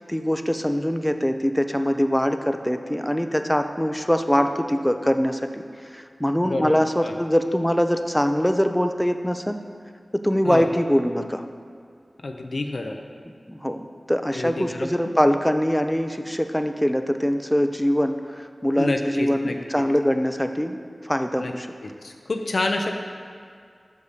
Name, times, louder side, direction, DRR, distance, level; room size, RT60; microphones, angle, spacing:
voice 1, 0.0-5.6 5.9-9.6 10.2-11.4 13.5-20.8 21.0-21.7, equal, 5° left, 7 dB, 0.5 m, -23 dB
voice 2, 6.4-7.1 10.4-10.7 12.2-13.0 14.3-14.9 18.8-19.8 21.4-21.5 21.8-22.9, left 2 dB, 75° left, 3 dB, 0.5 m, -28 dB
5.4 x 5.2 x 6.6 m, 2.3 s
wide cardioid pair, 45°, 0 cm